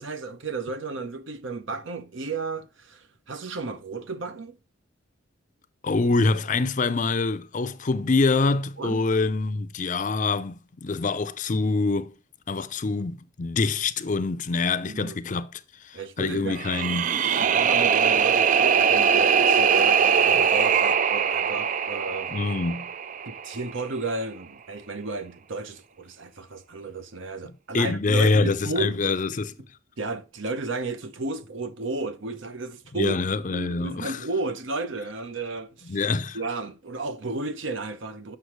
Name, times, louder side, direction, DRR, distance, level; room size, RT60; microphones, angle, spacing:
voice 1, 0.0-4.6 8.8-9.0 14.9-15.3 15.9-16.6 17.4-22.3 23.3-29.1 30.0-33.2 33.5-36.0 36.3-38.4, right 3 dB, 65° right, 0.8 m, -33 dB
voice 2, 5.8-12.1 12.5-17.2 22.3-22.9 27.7-29.5 32.9-34.2 35.9-36.4, left 3 dB, 40° left, 0.5 m, -25 dB
sound 1, 16.5-23.6, right 7 dB, 40° right, 0.3 m, -21 dB
7.9 x 5.9 x 3.1 m
head